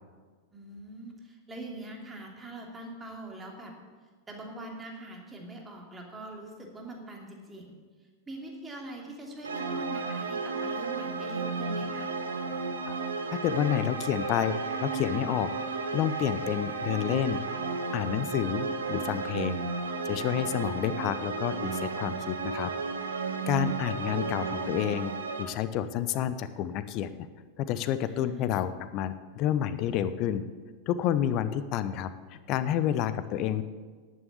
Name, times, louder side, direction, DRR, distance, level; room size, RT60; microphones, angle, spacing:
voice 1, 0.5-3.7 4.3-7.8 8.3-12.1 20.4-20.7 28.0-28.5, right 2 dB, 15° right, 1 dB, 2.8 m, -43 dB
sound 1, 9.4-25.4, right 4 dB, 75° right, 1.3 m, -33 dB
voice 2, 13.3-14.5 14.8-15.5 15.9-17.4 17.9-19.6 20.0-22.7 23.5-25.1 25.4-27.1 27.6-30.5 30.9-33.6, left 10 dB, 40° left, 13 dB, 0.8 m, -29 dB
11.0 x 9.4 x 8.5 m, 1.5 s
figure-of-eight pair, 90°, 0 cm